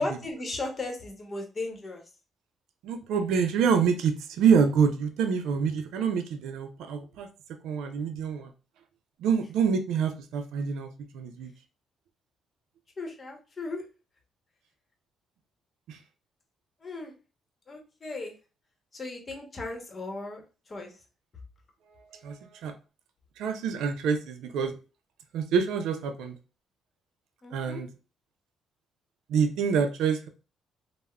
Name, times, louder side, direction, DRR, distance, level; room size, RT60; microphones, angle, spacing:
voice 1, 0.0-2.0 13.0-13.9 16.8-17.1 17.7-18.3 18.9-21.0 27.4-27.8, left 2 dB, 35° left, 3 dB, 0.9 m, -36 dB
voice 2, 2.8-7.3 7.6-8.5 9.2-11.5 15.9-16.0 22.1-22.7 23.4-24.8 25.3-26.4 27.5-27.9 29.3-30.3, right 6 dB, 85° right, 7 dB, 0.4 m, -26 dB
3.4 x 2.0 x 2.2 m, 0.33 s
cardioid pair, 90°, 0 cm